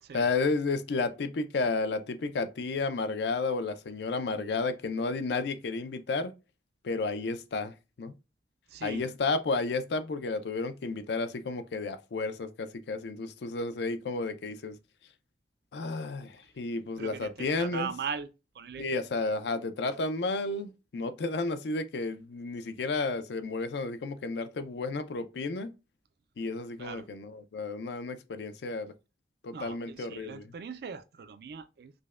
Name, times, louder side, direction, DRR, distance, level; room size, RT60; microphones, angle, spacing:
voice 1, 0.1-6.3 6.8-8.1 8.8-14.8 15.7-17.9 18.8-25.7 26.4-28.9 29.4-30.4, left 3 dB, 75° left, 0.4 m, -32 dB
voice 2, 8.7-9.1 17.0-18.3 18.5-18.9 26.8-27.1 29.5-31.9, right 6 dB, 60° right, 0.3 m, -39 dB
5.0 x 2.1 x 2.3 m
head